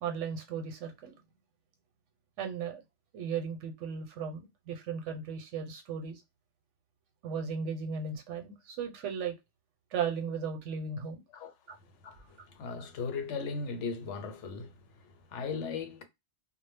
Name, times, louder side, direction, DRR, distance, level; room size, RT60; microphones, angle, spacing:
voice 1, 0.0-1.2 2.4-2.8 3.1-6.2 7.2-9.3 9.9-11.2 11.7-11.8, right 6 dB, 85° right, 1.0 m, -36 dB
voice 2, 12.0-16.0, left 4 dB, 80° left, 0.9 m, -38 dB
2.0 x 2.0 x 3.3 m
omnidirectional pair, 1.2 m